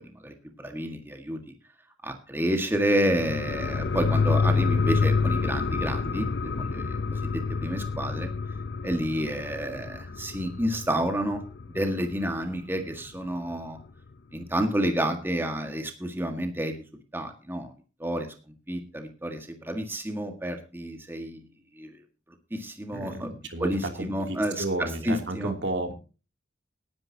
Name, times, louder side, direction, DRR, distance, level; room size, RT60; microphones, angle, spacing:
voice 1, 0.0-1.5 2.0-8.3 8.8-11.4 11.7-13.8 14.3-16.8 17.1-17.7 18.0-18.3 18.7-21.4 21.8-22.0 22.5-23.3 23.6-25.5, right 1 dB, 10° right, 4 dB, 1.7 m, -30 dB
sound 1, 3.1-12.2 12.6-12.7, left 4 dB, 60° left, 0.7 m, -28 dB
voice 2, 22.9-25.9, right 2 dB, 65° right, 4 dB, 2.9 m, -32 dB
19.5 x 10.5 x 2.8 m, 0.33 s
head